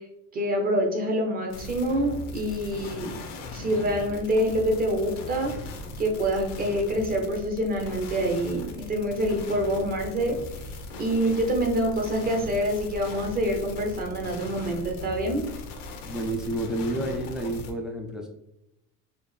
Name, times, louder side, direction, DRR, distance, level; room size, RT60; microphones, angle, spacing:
voice 1, 0.3-3.2 3.5-5.5 6.0-10.4 11.0-15.4, equal, 25° right, 2 dB, 0.7 m, -26 dB
sound 1, 1.5-17.7, left 2 dB, 90° left, 0.9 m, -39 dB
voice 2, 16.0-18.3, right 1 dB, ahead, 1 dB, 0.3 m, -30 dB
4.3 x 2.5 x 3.2 m, 0.83 s
cardioid pair, 150°, 36 cm